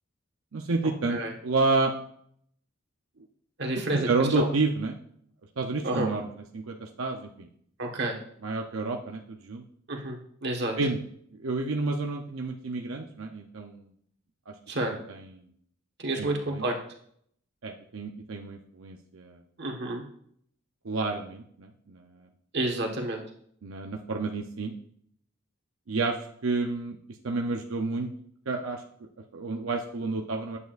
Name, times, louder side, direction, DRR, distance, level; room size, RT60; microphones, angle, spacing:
voice 1, 0.5-1.9 3.9-5.0 5.6-6.3 6.5-7.5 8.4-9.6 10.8-11.0 11.4-13.9 14.5-14.6 14.9-15.3 16.2-16.6 17.6-19.4 20.8-22.0 23.6-24.7 25.9-27.0 27.2-28.1 28.5-30.6, right 3 dB, 85° right, 2 dB, 0.7 m, -30 dB
voice 2, 3.6-4.1 4.3-4.5 5.8-6.1 7.8-8.2 9.9-10.7 14.7-15.0 16.0-16.7 19.6-20.0 22.5-23.2, right 2 dB, 55° right, 1 dB, 1.5 m, -29 dB
9.4 x 8.3 x 2.5 m, 0.65 s
head